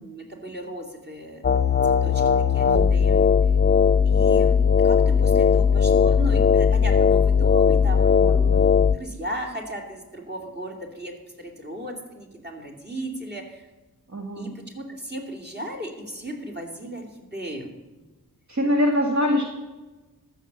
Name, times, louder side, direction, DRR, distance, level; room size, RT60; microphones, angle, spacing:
voice 1, 0.0-1.4 1.8-3.2 4.0-8.5 8.9-13.7 14.4-17.7, right 1 dB, 25° right, 1 dB, 2.8 m, -36 dB
sound 1, 1.4-9.0, left 6 dB, 30° left, 0.5 m, -18 dB
voice 2, 2.7-3.0 8.2-8.6 14.1-14.5 18.5-19.5, left 1 dB, 50° right, -1 dB, 2.0 m, -24 dB
13.5 x 7.4 x 6.8 m, 1.2 s
cardioid pair, 65°, 37 cm